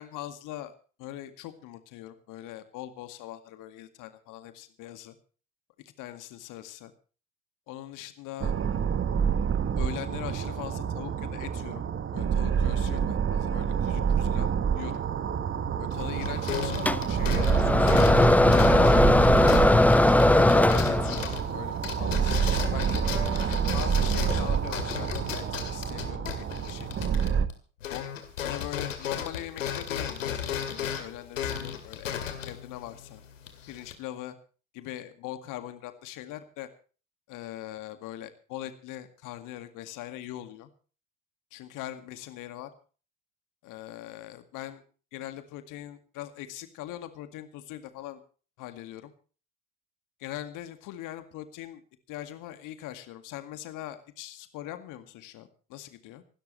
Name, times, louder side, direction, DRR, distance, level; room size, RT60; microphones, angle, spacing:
voice 1, 0.0-5.1 6.0-6.9 7.7-8.5 9.8-11.8 12.1-15.0 15.8-18.4 18.7-19.5 20.3-27.1 27.9-28.1 28.4-33.2 33.7-34.3 34.7-36.7 37.3-40.7 41.5-42.7 43.6-44.8 45.1-48.2 48.6-49.1 50.2-51.8 52.1-56.2, left 13 dB, 55° left, 9 dB, 2.0 m, -41 dB
sound 1, 8.4-27.5, right 7 dB, 30° right, 1.4 m, -28 dB
stretching a rubber band on a plastic box, 15.9-27.6 27.8-33.9, left 8 dB, 75° left, 2.5 m, -35 dB
sound 2, 16.9-21.3, left 1 dB, 5° left, 0.7 m, -19 dB
26.5 x 13.0 x 3.2 m, 0.38 s
figure-of-eight pair, 65°, 38 cm